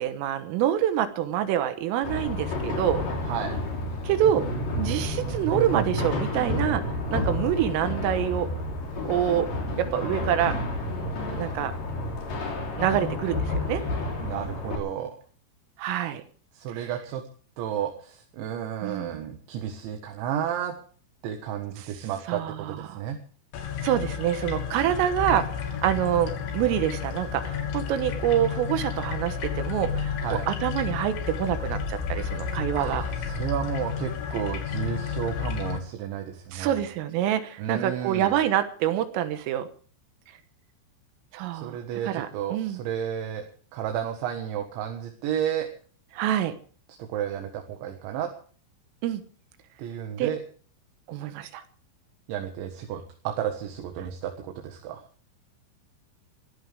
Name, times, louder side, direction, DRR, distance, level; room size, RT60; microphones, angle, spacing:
voice 1, 0.0-3.0 4.0-4.5 4.7-6.8 7.1-8.5 9.1-9.5 9.8-10.6 11.4-11.7 12.8-13.8 15.8-16.2 16.8-16.9 18.8-19.2 21.8-21.9 22.3-23.0 23.8-33.0 36.5-39.7 41.3-41.8 42.0-42.8 46.1-46.6 49.0-49.2 50.2-50.3 51.1-51.6, right 11 dB, 90° right, 9 dB, 4.0 m, -26 dB
sound 1, 2.0-14.8, left 1 dB, 45° left, 4.8 m, -30 dB
voice 2, 14.2-15.2 16.5-17.2 17.6-20.8 21.2-23.2 30.2-30.5 32.7-36.8 37.6-38.4 41.6-43.5 43.7-45.7 47.0-48.3 49.8-50.4 52.3-55.0, right 9 dB, 70° right, 4 dB, 3.8 m, -32 dB
sound 2, 23.5-35.8, left 6 dB, 70° left, 4.4 m, -31 dB
24.0 x 14.5 x 3.5 m, 0.43 s
omnidirectional pair, 5.7 m